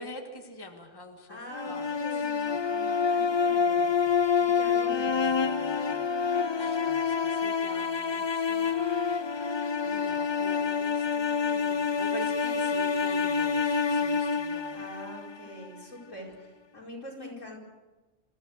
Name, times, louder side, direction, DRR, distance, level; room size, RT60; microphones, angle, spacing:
voice 1, 0.0-1.4 1.7-2.3 5.2-14.8, left 1 dB, 20° left, 3 dB, 2.0 m, -45 dB
voice 2, 1.3-4.0 4.4-5.4 14.7-17.7, left 1 dB, 80° left, -3 dB, 5.3 m, -44 dB
sound 1, 1.5-15.7, left 6 dB, 35° left, 0.4 m, -27 dB
26.5 x 15.0 x 6.5 m, 1.2 s
omnidirectional pair, 1.3 m